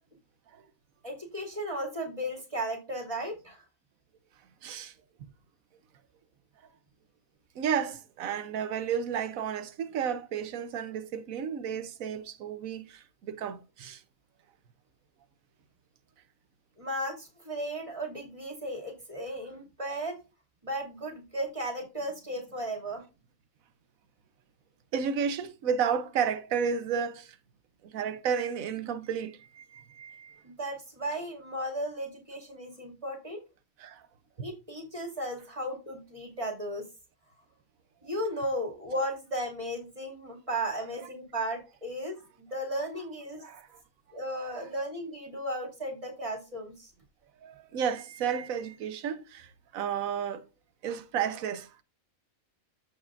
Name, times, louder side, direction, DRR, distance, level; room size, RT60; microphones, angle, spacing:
voice 1, 1.0-3.6 16.8-20.2 20.6-23.0 30.4-33.4 34.4-36.9 38.0-43.4 44.1-46.9, right 1 dB, 25° right, 2.6 m, -35 dB
voice 2, 4.6-4.9 7.6-14.0 24.9-27.4 27.9-30.4 33.8-34.0 34.4-34.5 43.4-43.7 44.3-44.6 47.4-49.5 49.7-50.4 50.8-51.7, right 7 dB, 85° right, 1.2 m, -32 dB
14.0 x 5.0 x 2.5 m
omnidirectional pair, 1.4 m